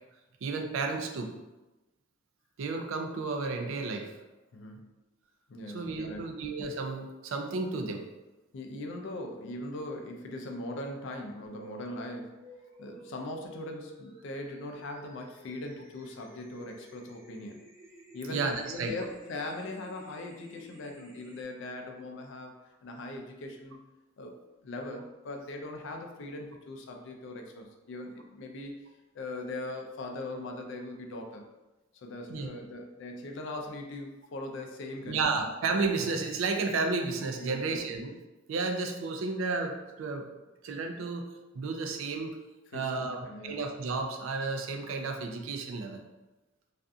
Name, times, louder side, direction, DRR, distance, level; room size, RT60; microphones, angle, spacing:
voice 1, 0.4-1.3 2.6-4.1 5.7-8.0 18.3-18.9 32.3-32.5 35.1-38.2 38.5-40.3 40.6-41.2 41.5-42.4 42.7-46.0, right 4 dB, 75° right, 4 dB, 0.4 m, -32 dB
voice 2, 4.5-4.9 5.5-6.5 8.5-12.4 12.8-17.6 18.1-23.8 24.2-28.7 29.1-31.5 31.9-35.5 37.4-38.0 42.7-43.6, left 2 dB, 65° left, 3 dB, 0.4 m, -40 dB
sound 1, 11.4-21.4, right 1 dB, 15° right, 0.6 m, -53 dB
2.5 x 2.4 x 2.3 m, 1.1 s
head